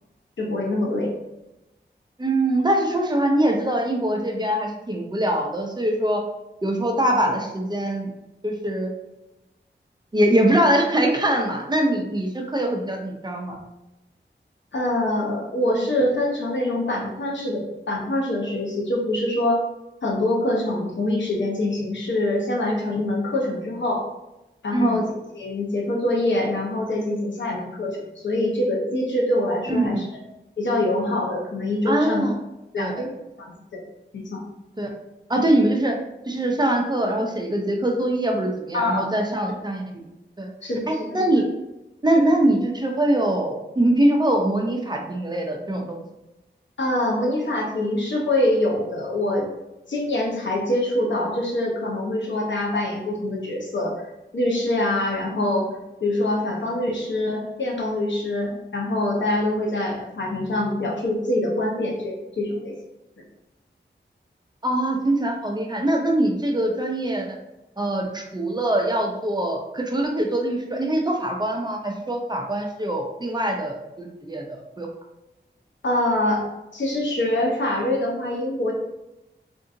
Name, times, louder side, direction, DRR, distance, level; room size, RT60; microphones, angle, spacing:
voice 1, 0.4-1.1 14.7-19.6 20.0-24.0 24.6-25.1 25.3-30.1 30.6-32.2 32.7-33.1 33.4-33.5 33.7-33.8 34.1-34.4 38.7-39.1 40.6-40.8 41.1-41.2 46.8-49.5 49.9-54.1 54.3-55.7 56.0-62.7 75.8-76.5 76.7-78.7, left 1 dB, 80° left, -1 dB, 0.8 m, -24 dB
voice 2, 2.2-6.2 6.6-8.1 8.4-8.9 10.1-13.6 24.7-25.0 29.7-30.0 31.9-32.4 32.8-33.1 34.8-34.9 35.3-36.0 36.3-40.0 40.4-41.4 42.0-46.0 64.6-67.4 67.8-74.9, right 1 dB, 20° right, 1 dB, 0.6 m, -23 dB
3.6 x 2.7 x 2.6 m, 0.96 s
wide cardioid pair, 70°, 19 cm